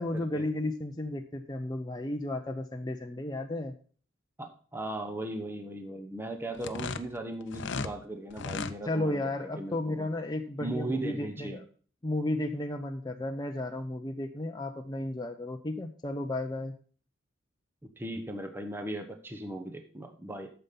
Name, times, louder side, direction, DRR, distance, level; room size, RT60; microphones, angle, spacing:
voice 1, 0.0-3.8 8.9-11.6 12.0-16.8, left 1 dB, 20° left, 3 dB, 0.6 m, -33 dB
voice 2, 4.4-9.2 9.6-10.1 10.6-11.6 17.8-20.5, right 1 dB, 10° right, 5 dB, 0.9 m, -37 dB
sound 1, 6.5-7.9 8.3-8.8, left 4 dB, 65° left, 0.6 m, -35 dB
8.9 x 6.9 x 5.7 m, 0.42 s
head